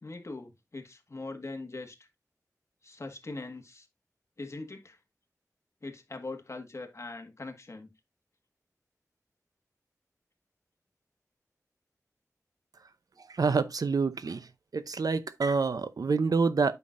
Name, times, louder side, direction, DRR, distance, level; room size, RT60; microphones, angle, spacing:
voice 1, 0.0-2.0 2.8-3.9 4.4-5.0 5.8-7.9, left 3 dB, 50° left, 1.6 m, -41 dB
voice 2, 13.3-14.5 14.7-16.8, right 4 dB, 80° right, 0.6 m, -27 dB
8.8 x 5.9 x 2.5 m
wide cardioid pair, 70°, 6 cm